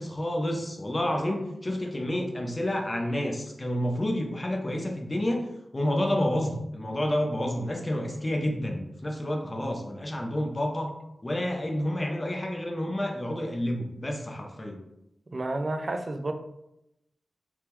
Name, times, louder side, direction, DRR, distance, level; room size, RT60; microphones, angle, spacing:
voice 1, 0.0-5.4 5.7-10.9 11.2-14.8, left 1 dB, 30° left, 0.6 m, -29 dB
voice 2, 15.3-16.3, right 2 dB, 45° right, 0.3 m, -31 dB
3.4 x 2.1 x 3.0 m
cardioid pair, 55°, 0 cm